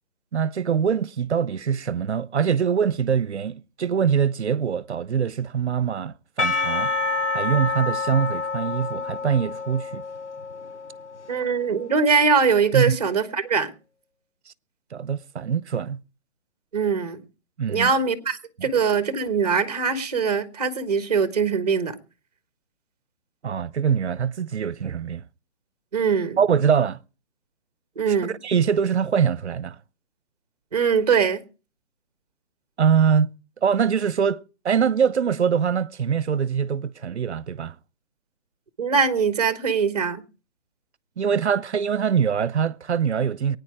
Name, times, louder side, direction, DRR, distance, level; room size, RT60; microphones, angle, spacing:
voice 1, 0.3-6.9 7.3-10.0 12.7-13.0 14.9-16.0 17.6-17.9 18.6-18.7 23.4-25.3 26.4-27.0 28.4-29.8 32.8-33.3 33.6-37.7 41.2-43.6, right 7 dB, 65° right, 0.9 m, -23 dB
Percussion / Church bell, 6.4-11.6, left 4 dB, 70° left, 1.9 m, -28 dB
voice 2, 11.3-13.7 16.7-17.2 17.7-22.0 25.9-26.4 28.0-28.4 30.7-31.4 38.8-40.2, right 5 dB, 35° right, 1.3 m, -22 dB
22.5 x 9.6 x 4.8 m
hypercardioid pair, 175°, 36 cm